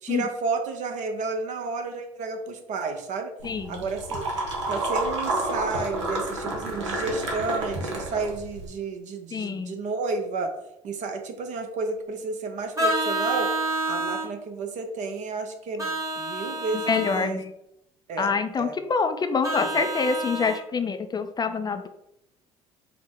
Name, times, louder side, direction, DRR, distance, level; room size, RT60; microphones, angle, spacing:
voice 1, 0.0-3.3 3.7-4.3 4.7-10.5 10.8-13.5 13.9-17.4 18.1-18.3 18.6-18.8 19.6-19.9, right 4 dB, 55° right, 5 dB, 0.8 m, -31 dB
voice 2, 3.4-3.8 9.3-9.7 16.9-17.5 18.2-21.9, left 5 dB, 25° left, 8 dB, 0.4 m, -26 dB
sound 1, 3.4-8.7, right 2 dB, 85° right, 0.8 m, -30 dB
Vehicle horn car horn honking, 12.8-14.3 15.8-17.3 19.4-20.6, right 2 dB, 20° right, 1.3 m, -28 dB
4.8 x 2.1 x 3.6 m, 0.78 s
hypercardioid pair, 65°, 15 cm